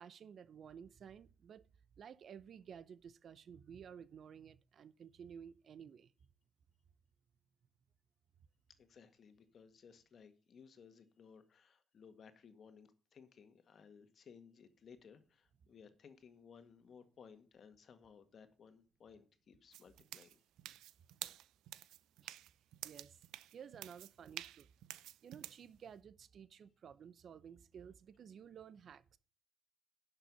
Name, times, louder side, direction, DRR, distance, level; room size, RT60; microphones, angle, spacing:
voice 1, 0.0-1.7 2.0-6.1 22.2-22.3 22.8-23.3 23.5-24.7 25.0-29.2, right 7 dB, 60° right, 0.8 m, -54 dB
voice 2, 8.8-20.4, left 6 dB, 55° left, 1.8 m, -60 dB
sound 1, 19.7-25.6, right 14 dB, 90° right, 0.6 m, -50 dB
11.0 x 6.8 x 5.4 m
cardioid pair, 90°, 0 cm